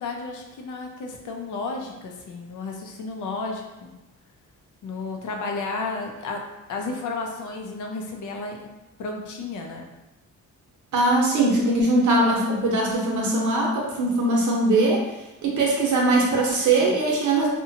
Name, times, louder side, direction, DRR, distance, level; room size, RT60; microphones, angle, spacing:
voice 1, 0.0-3.9 4.8-6.4 6.7-8.7 9.0-9.9, left 3 dB, 65° left, 2 dB, 0.6 m, -32 dB
voice 2, 10.9-15.0 15.4-17.5, right 2 dB, 60° right, -2 dB, 0.8 m, -21 dB
2.8 x 2.2 x 2.7 m, 0.98 s
cardioid pair, 120°, 33 cm